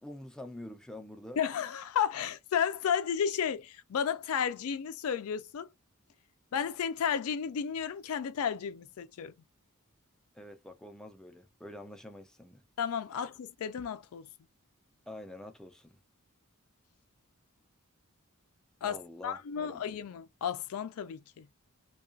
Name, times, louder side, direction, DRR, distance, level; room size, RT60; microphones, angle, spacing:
voice 1, 0.0-1.4 10.3-12.6 15.1-16.0 18.8-19.8, left 1 dB, 5° left, 0.4 m, -46 dB
voice 2, 1.4-5.7 6.5-9.3 12.8-14.3 18.8-19.0 19.2-21.5, left 7 dB, 80° left, 0.4 m, -33 dB
2.3 x 2.3 x 2.5 m
head